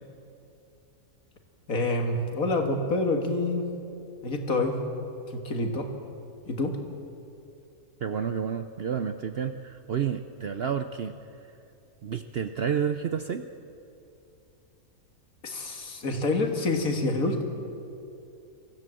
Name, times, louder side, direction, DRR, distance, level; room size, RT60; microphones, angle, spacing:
voice 1, 1.7-3.7 4.2-4.8 5.3-5.9 6.5-6.8 15.4-17.4, left 2 dB, 65° left, 4 dB, 2.3 m, -27 dB
voice 2, 8.0-11.1 12.0-13.4, right 7 dB, 55° right, 8 dB, 0.7 m, -30 dB
23.5 x 15.0 x 7.6 m, 2.7 s
omnidirectional pair, 1.6 m